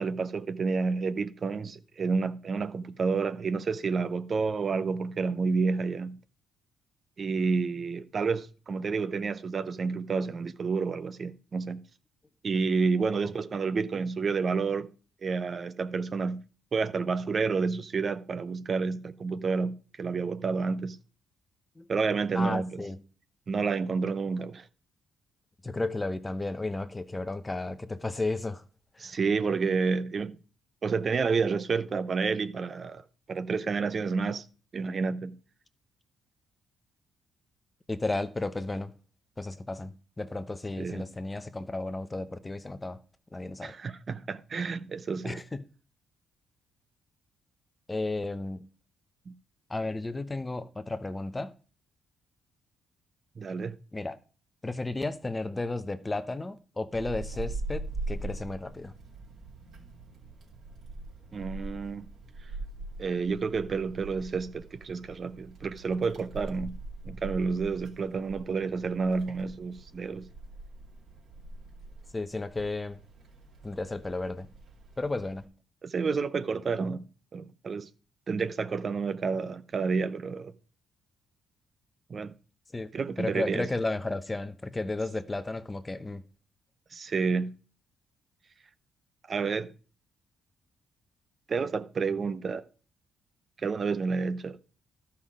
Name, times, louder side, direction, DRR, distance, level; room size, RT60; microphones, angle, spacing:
voice 1, 0.0-6.2 7.2-11.8 12.4-14.9 15.2-16.4 16.7-21.0 21.9-22.8 23.5-24.7 29.0-30.3 30.8-34.4 34.7-35.4 40.8-41.1 43.6-45.4 49.3-49.4 53.4-53.8 61.3-62.1 63.0-66.8 67.0-70.3 75.8-77.0 77.3-77.9 78.3-80.5 82.1-82.3 82.9-83.7 86.9-87.5 89.3-89.7 91.5-92.7 93.6-94.6, right 4 dB, 45° right, 0.6 m, -30 dB
voice 2, 22.3-23.0 25.6-28.6 28.9-29.1 37.9-38.9 39.4-43.0 43.3-43.7 45.2-45.6 47.9-48.6 49.7-51.5 53.9-54.2 54.6-58.9 72.1-73.0 73.6-74.5 75.0-75.5 82.7-82.9 83.2-86.2, left 2 dB, 20° left, 0.8 m, -33 dB
Wind, 56.9-75.4, right 2 dB, 65° right, 3.2 m, -42 dB
12.0 x 5.7 x 5.0 m
cardioid pair, 90°, 0 cm